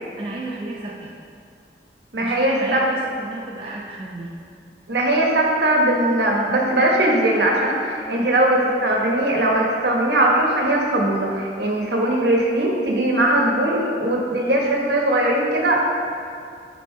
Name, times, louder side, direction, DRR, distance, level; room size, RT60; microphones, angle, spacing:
voice 1, 0.2-1.1 2.2-4.3, right 2 dB, 30° right, -4 dB, 0.6 m, -32 dB
voice 2, 2.1-2.8 4.9-15.8, right 1 dB, 70° right, -2 dB, 1.3 m, -20 dB
8.6 x 4.1 x 4.6 m, 2.4 s
head